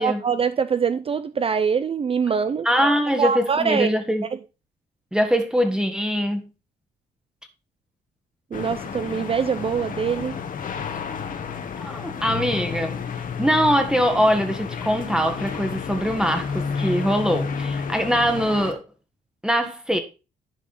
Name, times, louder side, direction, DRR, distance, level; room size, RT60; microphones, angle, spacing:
voice 1, 0.0-2.7 3.2-3.9 8.5-10.4, right 6 dB, 35° right, 0.5 m, -23 dB
voice 2, 2.6-4.3 5.1-6.5 11.8-12.9 13.4-18.8 19.4-20.0, equal, 5° right, 1.4 m, -22 dB
sound 1, 8.5-18.7, left 6 dB, 55° left, 1.4 m, -31 dB
11.0 x 4.8 x 4.2 m
cardioid pair, 90°, 17 cm